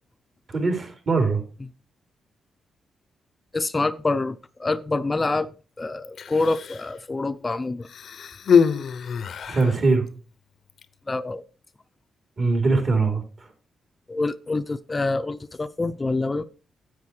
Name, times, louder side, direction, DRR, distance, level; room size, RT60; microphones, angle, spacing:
voice 1, 0.5-1.4 9.5-10.0 12.4-13.5, right 3 dB, 50° right, 4 dB, 4.0 m, -22 dB
voice 2, 3.5-5.5 5.8-7.9 11.1-11.4 14.1-16.4, left 3 dB, 25° left, 10 dB, 0.6 m, -26 dB
Human voice, 6.0-6.9 7.8-9.8 10.7-10.8, left 6 dB, 65° left, 0.7 m, -24 dB
9.6 x 8.1 x 4.8 m, 0.37 s
cardioid pair, 75°, 0 cm